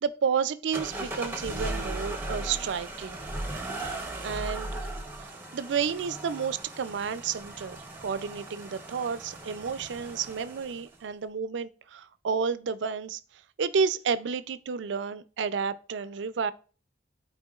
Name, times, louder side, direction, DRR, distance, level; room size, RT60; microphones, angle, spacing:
voice 1, 0.0-3.2 3.8-4.9 5.2-5.3 5.5-13.2 13.6-16.5, right 6 dB, 80° right, 0.4 m, -31 dB
sound 1, 0.7-11.0, right 2 dB, 10° right, 0.8 m, -37 dB
11.5 x 4.4 x 2.4 m
head